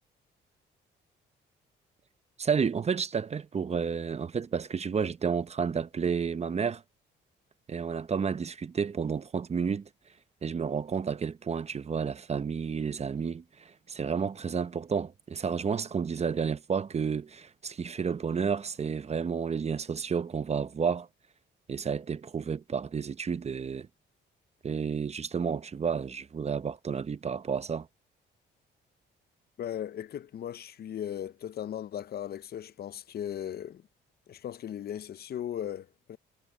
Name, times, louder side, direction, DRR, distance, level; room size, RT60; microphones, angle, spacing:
voice 1, 2.4-6.8 7.7-9.9 10.4-21.1 21.7-23.9 24.6-27.9, right 6 dB, 35° right, 0.7 m, -31 dB
voice 2, 29.6-33.8 34.3-36.2, left 10 dB, 50° left, 0.6 m, -37 dB
cardioid pair, 90°, 20 cm